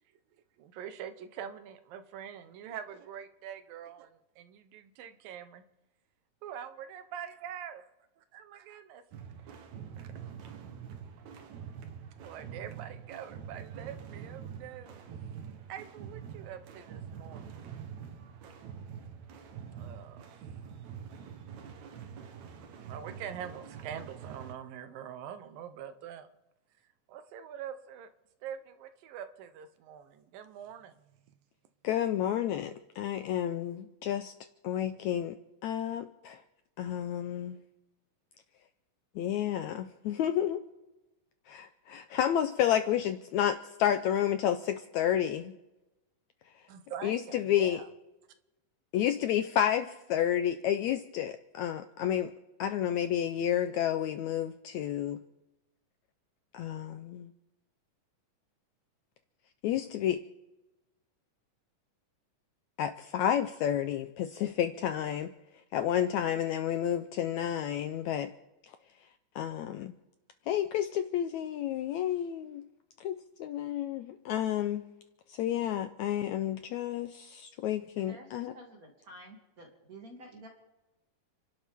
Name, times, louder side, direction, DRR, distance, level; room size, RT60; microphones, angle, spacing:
voice 1, 0.6-5.6 6.4-7.8 8.3-9.0 10.0-10.1 12.2-15.0 15.7-17.5 19.7-20.4 22.9-26.3 27.1-28.1 28.4-31.0 46.7-47.9, right 9 dB, 90° right, 2.7 m, -44 dB
sound 1, 9.1-24.6, right 7 dB, 65° right, 2.3 m, -45 dB
voice 2, 31.8-34.3 34.6-36.4 36.8-37.6 39.1-40.7 41.5-45.6 46.4-46.7 47.0-47.8 48.9-52.3 52.6-55.2 56.5-57.3 59.6-60.2 62.8-65.3 65.7-68.3 68.6-68.7 69.0-69.1 69.3-69.9 70.5-72.7 73.0-74.9 75.3-78.5, left 10 dB, 80° left, 1.7 m, -31 dB
voice 3, 78.0-80.5, right 1 dB, 25° right, 2.7 m, -51 dB
29.5 x 12.0 x 3.6 m
omnidirectional pair, 3.9 m